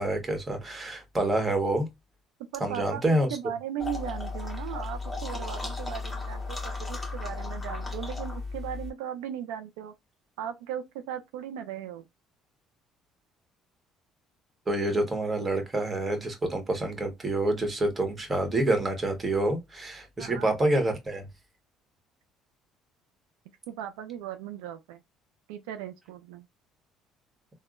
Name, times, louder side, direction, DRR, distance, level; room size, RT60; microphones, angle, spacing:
voice 1, 0.0-1.9 2.6-3.3 14.7-21.3, right 1 dB, 25° right, 1.2 m, -27 dB
voice 2, 2.5-3.0 3.3-9.9 10.4-12.1 20.2-20.5 23.7-25.0 25.5-26.5, right 10 dB, 90° right, 0.3 m, -37 dB
sound 1, 3.8-8.9, left 3 dB, 15° left, 0.9 m, -35 dB
3.5 x 2.0 x 2.4 m
supercardioid pair, 80°, 0 cm